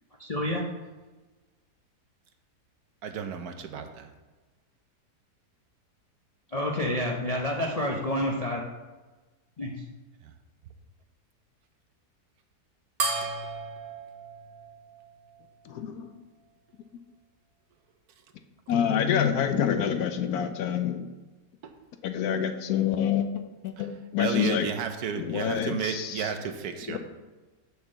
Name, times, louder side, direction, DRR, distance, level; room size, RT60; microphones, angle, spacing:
voice 1, 0.2-0.6 6.5-8.6 9.6-9.7, left 1 dB, 45° left, -1 dB, 0.5 m, -28 dB
voice 2, 3.0-4.1 13.2-13.3 21.6-21.7 24.2-27.0, right 7 dB, 70° right, 7 dB, 1.1 m, -33 dB
sound 1, 13.0-15.8, right 3 dB, 40° right, 1.2 m, -34 dB
voice 3, 15.6-16.1 18.7-21.1 22.0-24.7 25.2-26.3 26.8-27.0, left 8 dB, 70° left, 8 dB, 1.0 m, -27 dB
6.9 x 4.4 x 6.5 m, 1.2 s
omnidirectional pair, 1.8 m